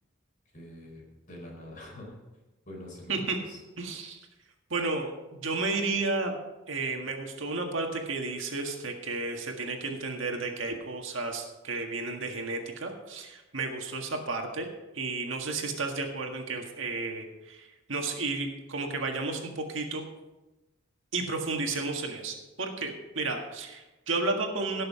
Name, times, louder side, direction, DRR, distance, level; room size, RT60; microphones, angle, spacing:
voice 1, 0.5-2.2 2.7-3.2 3.4-3.6, left 1 dB, 45° left, -2 dB, 4.6 m, -45 dB
voice 2, 3.8-4.2 4.7-6.4 6.7-14.7 14.9-20.0 21.1-24.8, right 3 dB, 75° right, 3 dB, 1.7 m, -32 dB
17.0 x 6.6 x 4.9 m, 1.0 s
head